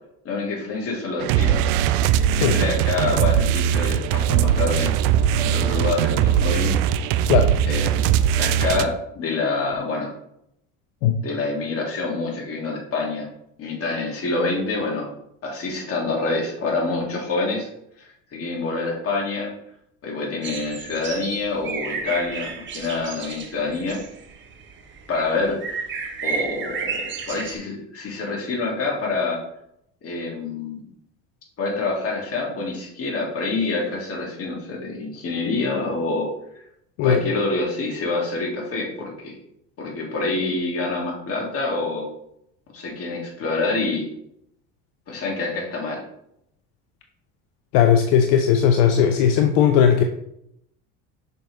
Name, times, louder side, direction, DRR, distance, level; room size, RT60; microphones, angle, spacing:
voice 1, 0.2-1.7 2.3-4.9 5.3-6.8 7.6-8.1 8.4-10.1 11.2-13.3 13.6-15.1 15.4-17.7 18.3-19.5 20.0-24.0 25.1-25.8 26.2-29.4 30.0-30.8 31.6-36.3 36.5-36.6 37.0-39.4 39.8-42.1 42.7-44.1 45.1-46.0, left 3 dB, 45° left, -2 dB, 2.4 m, -26 dB
sound 1, 1.2-8.9, right 10 dB, 70° right, 0.5 m, -20 dB
sound 2, 20.4-27.5, right 5 dB, 35° right, 1.2 m, -32 dB
voice 2, 47.7-50.0, left 8 dB, 75° left, 6 dB, 0.7 m, -17 dB
5.9 x 5.3 x 3.3 m, 0.76 s
supercardioid pair, 105°, 34 cm